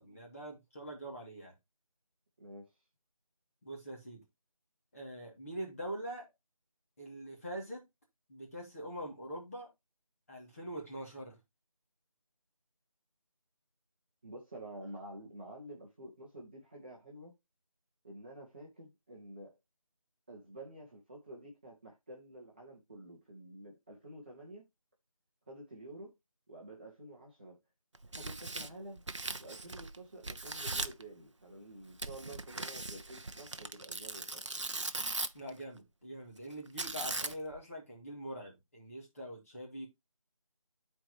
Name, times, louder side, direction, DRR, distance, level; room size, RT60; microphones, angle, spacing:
voice 1, 0.0-1.5 3.6-4.2 4.9-6.3 7.0-7.8 8.3-9.7 10.3-11.4 35.3-39.9, right 1 dB, 25° left, 2.5 m, -44 dB
voice 2, 2.4-2.7 14.2-17.4 18.0-19.6 20.3-24.6 25.5-26.1 26.5-27.6 28.1-29.0 29.4-34.5, right 1 dB, 15° right, 1.2 m, -49 dB
Tearing, 27.9-30.0 30.2-31.0 32.0-35.5 36.8-37.6, right 3 dB, 60° right, 0.7 m, -39 dB
11.5 x 4.6 x 3.0 m
figure-of-eight pair, 170°, 18 cm